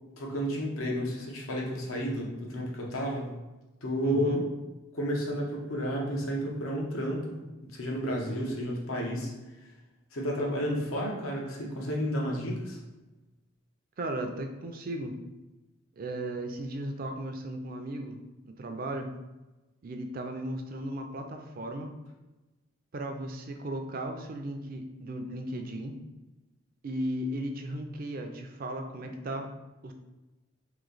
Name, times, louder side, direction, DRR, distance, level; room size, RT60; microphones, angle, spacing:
voice 1, 0.2-3.4 3.8-4.4 4.9-7.4 7.7-9.7 10.1-12.8, equal, 85° left, -1 dB, 0.9 m, -31 dB
voice 2, 4.0-4.4 14.0-15.1 16.0-18.2 18.6-19.1 19.8-21.9 22.9-26.0 26.8-29.5 29.8-29.9, right 1 dB, 45° right, 5 dB, 0.4 m, -35 dB
3.0 x 2.8 x 3.9 m, 1.1 s
head